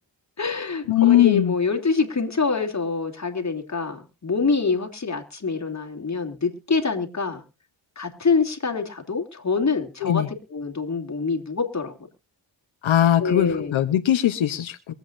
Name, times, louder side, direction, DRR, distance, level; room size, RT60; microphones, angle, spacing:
voice 1, 0.4-7.4 8.0-10.2 10.5-11.9 13.2-13.8, left 4 dB, 35° left, 4 dB, 2.7 m, -25 dB
voice 2, 0.9-1.5 10.0-10.3 12.8-14.9, left 11 dB, 85° left, 10 dB, 0.9 m, -20 dB
23.5 x 8.2 x 2.5 m, 0.30 s
cardioid pair, 65°, 46 cm